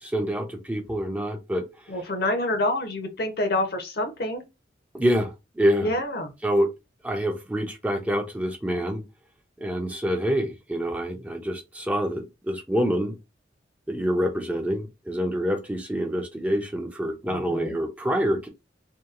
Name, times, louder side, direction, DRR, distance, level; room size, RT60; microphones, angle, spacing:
voice 1, 0.0-1.6 4.9-5.9 6.4-6.7 7.0-9.0 9.6-13.1 13.9-18.5, equal, 10° right, 0.4 m, -26 dB
voice 2, 1.9-4.4 5.8-6.3 17.3-17.8, left 1 dB, 55° left, 0.7 m, -27 dB
2.8 x 2.3 x 2.3 m
head